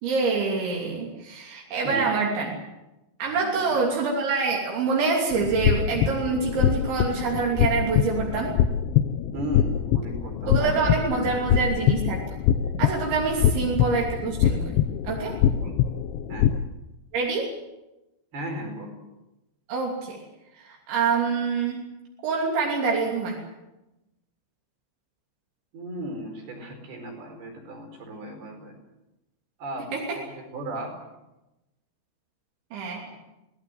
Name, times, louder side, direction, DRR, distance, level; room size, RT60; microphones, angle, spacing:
voice 1, 0.0-2.6 3.2-8.5 10.5-12.2 12.8-14.8 15.0-15.4 17.1-17.5 19.7-20.2 20.6-21.8 22.2-23.4 29.9-30.2 32.7-33.1, right 4 dB, 80° right, -1 dB, 5.4 m, -26 dB
voice 2, 3.3-3.7 9.3-11.6 13.4-13.5 15.6-15.8 16.3-16.5 18.3-18.9 25.7-28.7 29.6-30.9, equal, 60° right, 4 dB, 6.5 m, -36 dB
sound 1, 5.3-16.6, left 9 dB, 80° left, 3.2 m, -24 dB
25.5 x 17.5 x 7.9 m, 0.99 s
omnidirectional pair, 5.2 m